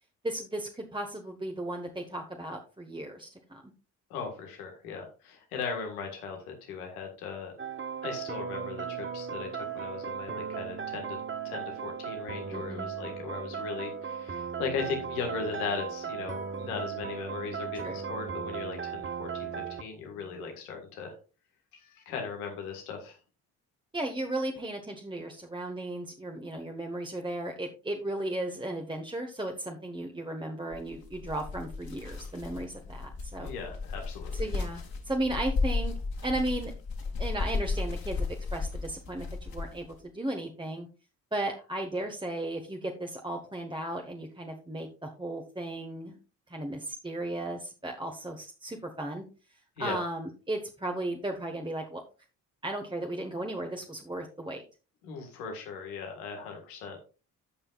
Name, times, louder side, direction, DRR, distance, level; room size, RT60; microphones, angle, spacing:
voice 1, 0.2-3.7 12.5-12.9 17.8-18.0 23.9-33.5 34.3-35.9 36.2-36.7 37.2-39.9 40.1-40.9 41.3-46.2 46.5-49.2 49.8-52.0 52.6-54.6, right 1 dB, 10° right, 2 dB, 1.5 m, -35 dB
voice 2, 4.1-7.5 8.0-11.2 11.4-21.2 21.7-23.2 33.4-34.5 49.8-50.0 55.0-57.0, left 5 dB, 85° left, 3 dB, 1.8 m, -38 dB
sound 1, 7.6-19.8, right 7 dB, 25° right, 1.0 m, -37 dB
sound 2, 30.7-40.0, left 4 dB, 50° left, 2.5 m, -34 dB
16.0 x 5.5 x 2.5 m, 0.34 s
hypercardioid pair, 45°, 43 cm